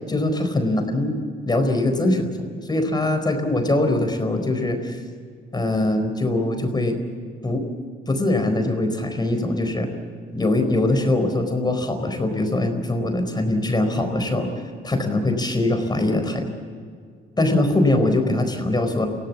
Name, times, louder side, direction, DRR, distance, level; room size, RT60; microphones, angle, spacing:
voice 1, 0.1-1.1 1.4-5.0 5.5-7.0 7.4-7.7 8.1-9.9 10.3-14.5 14.8-16.5 17.4-19.1, left 2 dB, 20° left, 6 dB, 4.5 m, -22 dB
25.0 x 17.5 x 7.4 m, 2.1 s
cardioid pair, 90°, 20 cm